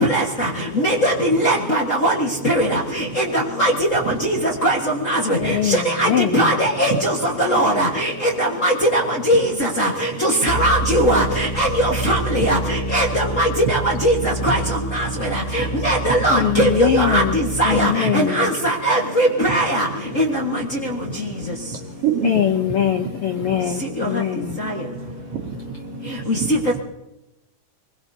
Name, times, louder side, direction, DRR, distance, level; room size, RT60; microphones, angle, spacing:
voice 1, 0.0-0.5 0.7-4.8 5.0-19.9 20.1-20.6 24.0-24.1 24.6-24.7 26.3-26.4, right 1 dB, 40° left, 1.2 m, -20 dB
voice 2, 4.0-4.5 5.4-5.6 6.9-7.0 9.3-9.5 13.7-14.7 15.6-15.7 16.1-16.7 17.7-18.3 20.1-20.2 22.0-22.8 23.4-23.6 25.3-26.0 26.4-26.8, right 8 dB, 60° right, 1.9 m, -28 dB
voice 3, 5.4-6.6 16.3-17.4 17.6-18.5 22.2-24.6, left 10 dB, 85° left, 1.2 m, -22 dB
sound 1, 10.5-17.9, right 2 dB, 15° left, 1.6 m, -28 dB
24.0 x 21.0 x 2.8 m
omnidirectional pair, 3.5 m